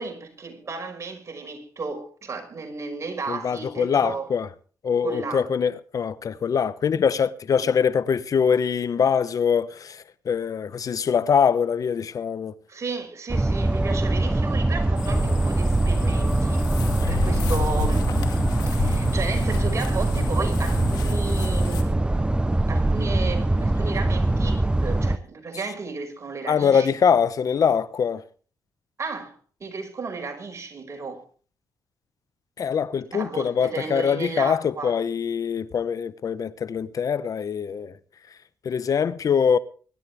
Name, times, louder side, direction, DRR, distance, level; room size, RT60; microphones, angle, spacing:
voice 1, 0.0-4.3 5.0-5.5 7.6-7.7 12.7-16.7 17.1-18.1 18.7-22.4 22.7-27.0 29.0-29.4 29.6-31.2 33.1-35.0, right 4 dB, 45° right, 5.6 m, -33 dB
voice 2, 3.3-4.5 4.8-12.5 17.0-17.1 26.5-28.2 32.6-37.9 38.6-39.6, left 7 dB, 60° left, 0.9 m, -23 dB
sound 1, 13.3-25.2, right 2 dB, 15° right, 0.7 m, -23 dB
sound 2, 15.0-21.8, left 6 dB, 85° left, 2.6 m, -32 dB
24.0 x 11.5 x 3.5 m
supercardioid pair, 55°, 7 cm